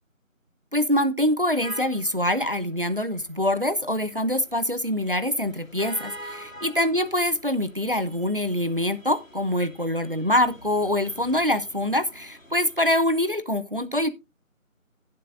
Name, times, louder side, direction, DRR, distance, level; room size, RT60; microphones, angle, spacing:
voice 1, 0.7-14.1, left 1 dB, 40° right, 13 dB, 0.8 m, -24 dB
sound 1, 1.6-13.3, equal, 70° left, 2.9 m, -46 dB
16.5 x 7.7 x 2.5 m, 0.24 s
figure-of-eight pair, 175°, 41 cm